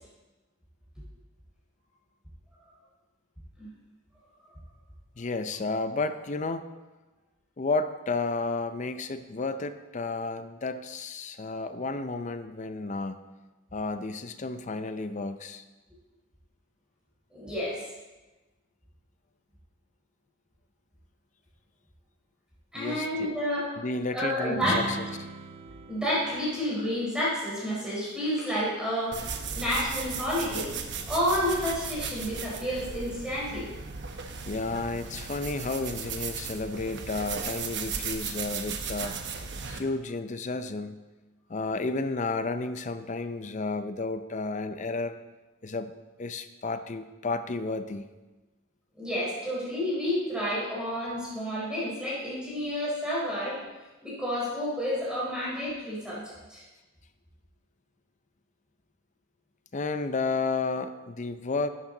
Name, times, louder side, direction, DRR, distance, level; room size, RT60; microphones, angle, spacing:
voice 1, 5.2-6.7 7.6-13.2 13.7-15.6 22.7-23.3 23.8-25.0 34.5-39.2 39.7-41.0 41.5-45.1 45.6-45.9 46.2-48.0 59.7-61.7, left 3 dB, 40° left, 10 dB, 0.6 m, -32 dB
voice 2, 17.3-17.8 22.7-23.7 24.1-24.8 25.9-29.2 29.5-30.7 31.1-33.7 49.0-53.6 54.0-56.2 56.5-56.6, equal, 5° right, -8 dB, 4.4 m, -30 dB
sound 1, 24.5-28.3, right 2 dB, 30° right, 0.6 m, -40 dB
sound 2, 29.1-39.8, right 5 dB, 60° right, 1.0 m, -36 dB
13.0 x 8.8 x 3.9 m, 1.2 s
head